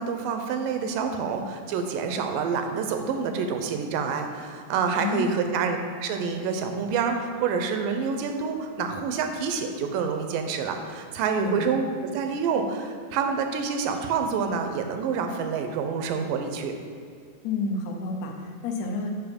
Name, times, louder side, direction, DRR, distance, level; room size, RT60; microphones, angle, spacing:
voice 1, 0.0-16.7, right 5 dB, 85° right, 5 dB, 2.4 m, -27 dB
voice 2, 5.0-5.4 11.4-11.7 17.4-19.1, left 3 dB, 70° left, 2 dB, 1.8 m, -30 dB
6.9 x 6.1 x 5.2 m, 2.3 s
omnidirectional pair, 3.9 m